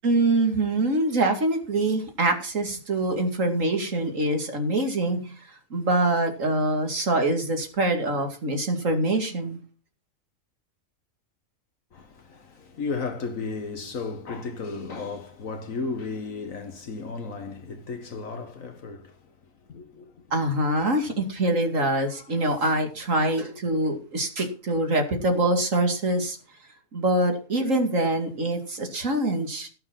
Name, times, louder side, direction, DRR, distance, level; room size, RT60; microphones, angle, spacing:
voice 1, 0.0-5.3 5.7-9.6 20.3-26.4 26.9-29.7, right 2 dB, 65° right, 2.8 m, -24 dB
voice 2, 11.9-19.3 19.7-20.1 22.1-22.3, left 4 dB, 70° left, 1.7 m, -34 dB
17.5 x 6.3 x 5.8 m
omnidirectional pair, 1.5 m